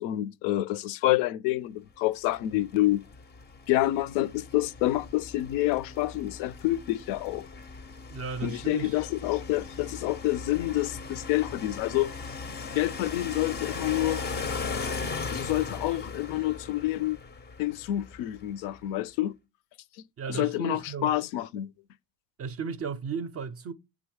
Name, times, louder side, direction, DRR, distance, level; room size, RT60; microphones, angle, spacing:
voice 1, 0.0-3.0 3.7-7.5 8.4-12.1 12.7-14.2 15.3-17.2 17.6-19.3 20.3-21.7, left 15 dB, 75° left, 0.5 m, -28 dB
sound 1, 2.3-18.5, left 4 dB, 25° left, 0.4 m, -38 dB
voice 2, 8.1-9.0 20.2-21.1 22.4-23.7, right 5 dB, 35° right, 0.4 m, -35 dB
7.7 x 3.6 x 4.8 m
supercardioid pair, 85°, 47 cm